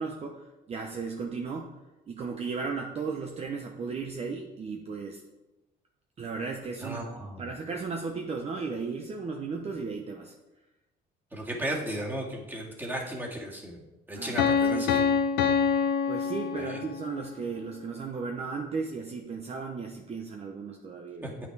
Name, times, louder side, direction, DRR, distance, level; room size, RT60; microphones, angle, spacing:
voice 1, 0.0-1.7 2.1-5.2 6.2-10.3 14.2-14.9 16.1-21.4, right 4 dB, 35° right, 2 dB, 0.9 m, -35 dB
voice 2, 6.8-7.4 11.3-13.8 14.1-15.0 16.6-16.8 21.2-21.3, right 1 dB, 10° right, -1 dB, 2.0 m, -35 dB
Piano, 14.4-17.2, left 6 dB, 75° left, 0.8 m, -25 dB
8.7 x 6.1 x 4.7 m, 1.0 s
cardioid pair, 110°, 17 cm